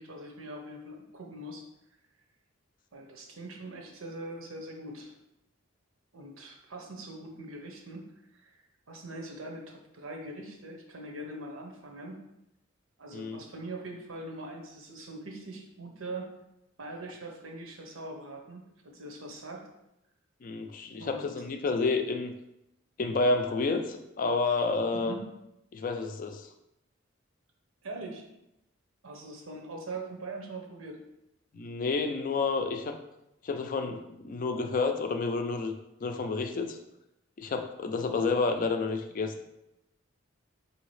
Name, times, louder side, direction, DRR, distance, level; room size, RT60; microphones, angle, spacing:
voice 1, 0.0-1.7 2.9-5.1 6.1-12.2 13.0-16.3 16.8-19.7 21.0-21.3 24.4-24.6 24.9-25.2 27.8-28.2 29.0-31.0, right 2 dB, 90° right, 2 dB, 0.8 m, -42 dB
voice 2, 20.4-22.3 23.0-25.2 25.7-26.5 31.5-33.0 33.4-35.7 36.0-36.8 37.4-39.3, left 3 dB, 40° left, 6 dB, 0.4 m, -30 dB
4.7 x 2.8 x 3.2 m, 0.87 s
head